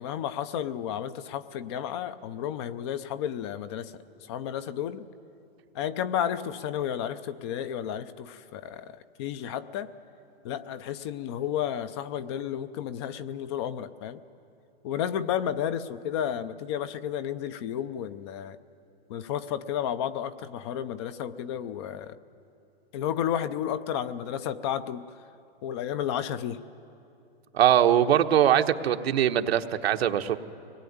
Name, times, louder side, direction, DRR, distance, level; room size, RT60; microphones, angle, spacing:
voice 1, 0.0-3.9 4.2-5.1 5.7-9.9 10.4-14.2 14.8-18.6 19.1-22.2 22.9-25.1 25.6-26.6, left 9 dB, 30° left, 13 dB, 0.5 m, -32 dB
voice 2, 27.5-30.4, right 10 dB, 85° right, 6 dB, 1.2 m, -22 dB
24.0 x 19.5 x 9.4 m, 2.6 s
supercardioid pair, 165°, 30 cm